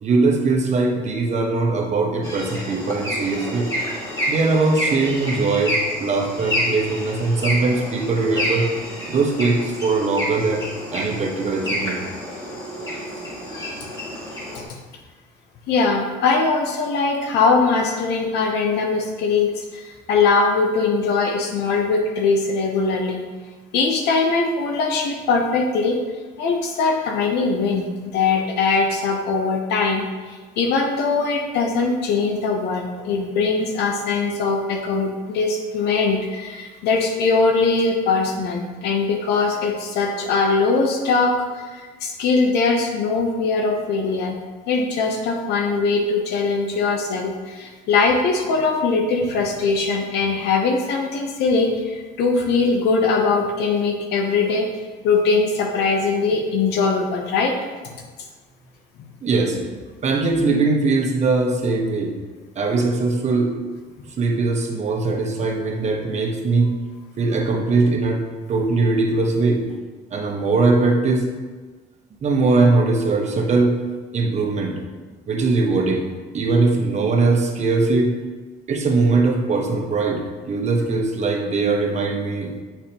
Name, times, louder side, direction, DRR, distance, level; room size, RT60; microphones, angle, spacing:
voice 1, 0.0-3.7 4.3-8.7 9.1-10.7 10.9-12.0 59.2-59.6 60.0-62.1 62.6-63.5 64.2-66.7 67.2-68.2 68.5-69.6 70.1-71.3 72.2-73.8 74.1-74.7 75.3-76.1 76.3-78.1 78.7-80.2 80.5-82.5, right 3 dB, 40° right, 1 dB, 1.1 m, -20 dB
osprey chirps squawks cries, 2.2-14.6, equal, 20° left, 2.0 m, -28 dB
voice 2, 15.7-23.2 23.7-26.0 26.4-44.4 44.7-54.7 55.0-57.6, left 4 dB, 80° left, 1 dB, 0.8 m, -21 dB
7.2 x 5.7 x 2.9 m, 1.4 s
cardioid pair, 110°, 17 cm